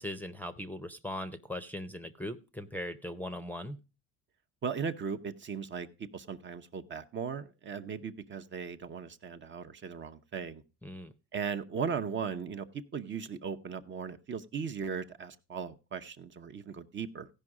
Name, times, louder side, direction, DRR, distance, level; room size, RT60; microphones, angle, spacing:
voice 1, 0.0-3.8 10.8-11.1, left 1 dB, 5° left, 11 dB, 0.6 m, -39 dB
voice 2, 4.6-5.9 6.1-10.6 11.3-12.7 12.9-17.3, right 6 dB, 35° right, 8 dB, 0.8 m, -37 dB
16.0 x 5.4 x 4.8 m, 0.31 s
cardioid pair, 110°, 33 cm